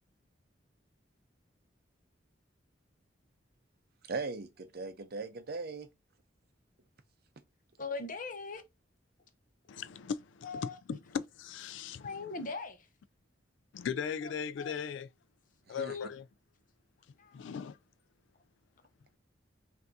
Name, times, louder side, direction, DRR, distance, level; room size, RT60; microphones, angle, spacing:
voice 1, 4.0-5.9 15.7-16.0, right 4 dB, 55° right, 0.6 m, -39 dB
voice 2, 7.8-8.6 10.4-10.8 12.0-12.9 14.6-14.7 15.9-16.1 17.2-17.4, left 4 dB, 45° left, 0.8 m, -40 dB
voice 3, 9.7-12.3 13.7-15.1 15.7-16.2 17.3-17.8, left 7 dB, 70° left, 0.3 m, -38 dB
5.6 x 2.7 x 2.6 m
head